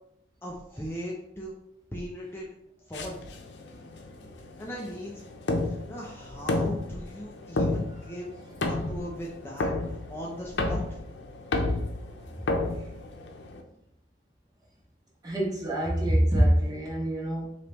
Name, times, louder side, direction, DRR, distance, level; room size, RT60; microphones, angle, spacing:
voice 1, 0.4-1.5 1.9-2.5 2.9-3.2 4.6-5.1 5.6-8.4 8.6-9.7 10.1-10.8, equal, 15° left, -3 dB, 0.5 m, -38 dB
sound 1, 2.9-13.6, left 2 dB, 85° left, 0.6 m, -32 dB
voice 2, 15.2-17.6, right 1 dB, 20° right, -4 dB, 1.1 m, -25 dB
3.9 x 2.9 x 3.4 m, 0.76 s
head